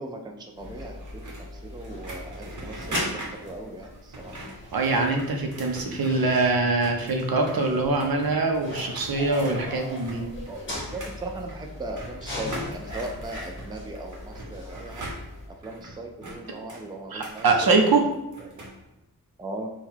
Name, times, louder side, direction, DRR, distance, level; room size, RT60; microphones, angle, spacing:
voice 1, 0.0-4.3 9.6-15.1 15.6-18.1 18.4-18.6 19.4-19.7, right 2 dB, 10° right, 2 dB, 0.4 m, -39 dB
sound 1, 0.5-15.5, left 1 dB, 30° left, 1.1 m, -40 dB
sound 2, 0.6-6.4 6.7-18.8, right 1 dB, 50° right, 1.0 m, -41 dB
voice 2, 4.7-10.2 17.1-18.0, right 3 dB, 70° right, 2 dB, 0.7 m, -23 dB
3.6 x 2.3 x 4.5 m, 0.91 s
wide cardioid pair, 80°, 38 cm